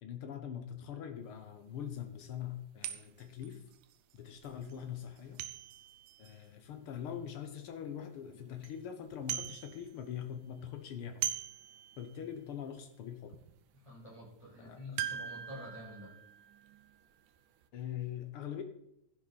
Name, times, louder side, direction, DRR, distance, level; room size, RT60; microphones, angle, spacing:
voice 1, 0.0-3.6 4.1-5.4 6.2-11.2 12.0-13.3 14.6-14.8 17.7-18.6, left 9 dB, 60° left, 7 dB, 1.5 m, -43 dB
sound 1, 1.3-1.4 1.9-2.0 2.8-7.5 8.0-8.1 8.4-8.8 9.0-10.2 10.4-12.4 12.8-12.9 13.3-13.5 15.0-17.4 17.6-17.7, right 11 dB, 90° right, 2.2 m, -42 dB
voice 2, 13.7-16.1, left 1 dB, 10° left, -5 dB, 4.5 m, -48 dB
12.5 x 10.5 x 4.2 m, 0.78 s
omnidirectional pair, 3.5 m